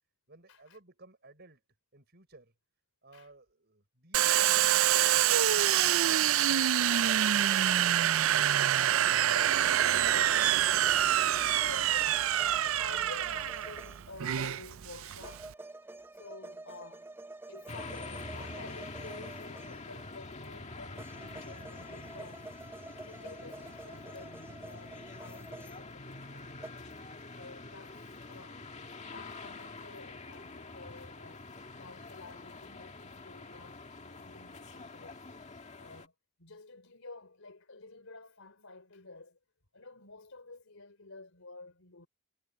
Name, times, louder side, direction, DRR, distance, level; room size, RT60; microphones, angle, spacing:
voice 1, 0.3-1.6 1.9-2.5 3.0-7.7, right 2 dB, 50° right, 6.4 m, -56 dB
Domestic sounds home sounds, 4.1-15.5, right 11 dB, 75° right, 0.4 m, -26 dB
sound 1, 9.4-14.3 15.2-20.1 21.0-26.3 26.6-26.7, right 2 dB, 10° right, 0.6 m, -49 dB
voice 2, 10.0-10.4 11.1-17.1 17.5-26.5 27.4-28.7 29.1-31.5 31.7-35.5 35.8-36.1 36.4-39.4 39.7-42.1, left 3 dB, 85° left, 3.7 m, -50 dB
sound 2, 17.7-36.1, left 3 dB, 35° left, 1.9 m, -46 dB
head